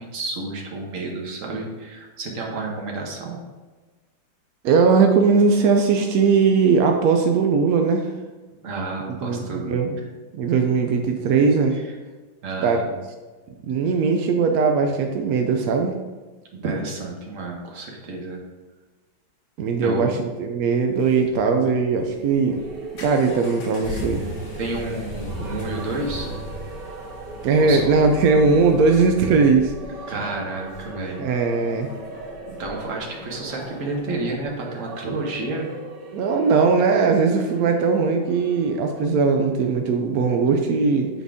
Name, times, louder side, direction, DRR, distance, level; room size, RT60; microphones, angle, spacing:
voice 1, 0.0-3.4 8.6-9.9 11.8-11.9 12.4-12.9 16.5-18.4 19.8-20.0 21.4-21.5 24.6-26.3 27.6-27.9 30.1-31.2 32.5-35.7, right 2 dB, 45° right, -1 dB, 1.3 m, -30 dB
voice 2, 4.6-8.1 9.1-10.0 10.3-11.8 12.6-12.8 13.7-15.9 19.6-22.6 23.0-24.2 27.4-29.7 31.2-31.9 36.1-41.1, right 4 dB, 80° right, 4 dB, 0.8 m, -19 dB
sound 1, 20.7-34.6, left 1 dB, 85° left, 2.1 m, -38 dB
sound 2, 22.5-39.1, right 3 dB, 65° right, 1.6 m, -40 dB
7.5 x 4.0 x 3.5 m, 1.3 s
omnidirectional pair, 2.1 m